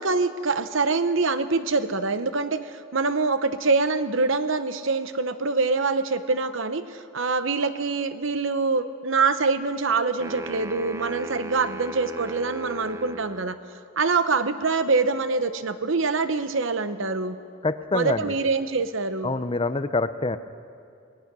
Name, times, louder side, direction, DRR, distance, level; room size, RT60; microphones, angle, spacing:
voice 1, 0.0-13.6 14.0-17.4 17.9-19.3, right 4 dB, 65° right, 11 dB, 0.9 m, -25 dB
sound 1, 10.2-13.5, right 2 dB, 15° right, 0.5 m, -36 dB
voice 2, 17.6-18.3 19.2-20.4, left 3 dB, 25° left, 12 dB, 0.6 m, -26 dB
24.0 x 19.0 x 6.2 m, 2.4 s
head